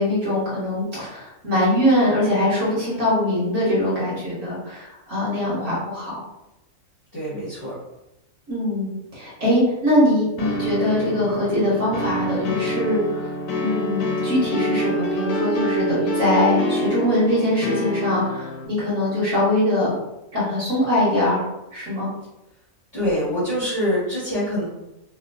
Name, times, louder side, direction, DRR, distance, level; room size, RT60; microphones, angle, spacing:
voice 1, 0.0-6.2 8.5-13.3 13.6-20.0 20.3-21.4 21.7-22.1, left 1 dB, 60° right, -7 dB, 1.4 m, -22 dB
voice 2, 7.1-7.7 22.9-24.6, equal, 40° left, -11 dB, 1.1 m, -24 dB
sound 1, 10.4-18.7, equal, 85° left, 1.1 m, -26 dB
3.0 x 2.9 x 2.6 m, 0.90 s
omnidirectional pair, 1.5 m